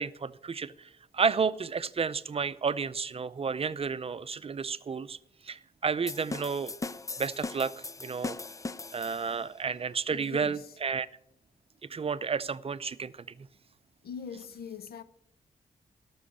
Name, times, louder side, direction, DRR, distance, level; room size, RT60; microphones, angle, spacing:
voice 1, 0.0-5.2 5.4-6.7 7.2-7.7 8.0-8.4 8.9-11.1 11.9-13.1 13.4-13.5, right 5 dB, 40° right, 0.6 m, -31 dB
sound 1, 6.1-9.5, left 3 dB, 20° left, 0.4 m, -39 dB
voice 2, 10.1-10.7 14.0-15.0, left 6 dB, 85° left, 0.8 m, -42 dB
13.0 x 6.3 x 8.4 m
cardioid pair, 95°, 15 cm